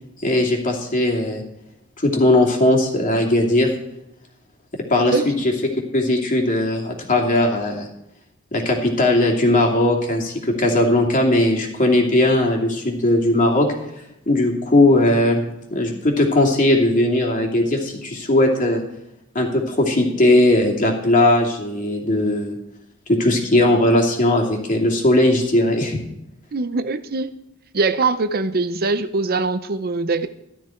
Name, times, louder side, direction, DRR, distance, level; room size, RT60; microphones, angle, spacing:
voice 1, 0.2-1.4 2.0-3.7 4.9-5.5 5.9-7.9 8.5-13.7 14.3-15.4 15.7-18.8 19.3-22.6 23.1-26.0, left 1 dB, 40° left, 2.7 m, -18 dB
voice 2, 5.1-5.5 26.5-27.3 27.7-30.3, right 3 dB, 45° right, 0.6 m, -22 dB
14.5 x 12.5 x 4.5 m
head